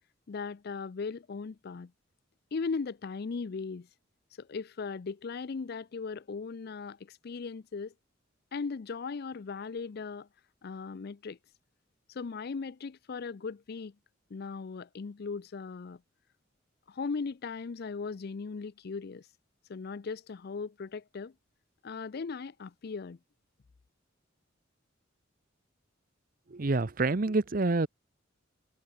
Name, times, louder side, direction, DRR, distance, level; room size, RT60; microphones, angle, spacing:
voice 1, 0.3-1.9 2.5-3.9 4.4-7.9 8.5-10.3 10.6-11.4 12.1-13.9 14.3-16.0 16.9-19.3 19.7-21.3 21.8-23.2, left 4 dB, 55° left, 0.5 m, -38 dB
voice 2, 26.5-27.9, right 3 dB, 45° right, 0.8 m, -27 dB
head